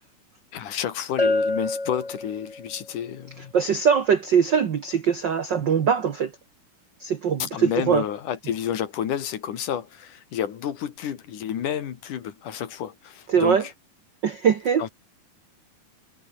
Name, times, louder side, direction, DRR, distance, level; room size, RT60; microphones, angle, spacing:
voice 1, 0.5-3.5 7.4-13.7 14.8-14.9, left 9 dB, 70° left, 3.4 m, -30 dB
Bell, 1.2-2.8, left 2 dB, 15° left, 1.9 m, -26 dB
voice 2, 3.5-6.3 7.0-8.0 13.3-13.6 14.2-14.9, right 7 dB, 75° right, 1.0 m, -22 dB
omnidirectional pair, 3.9 m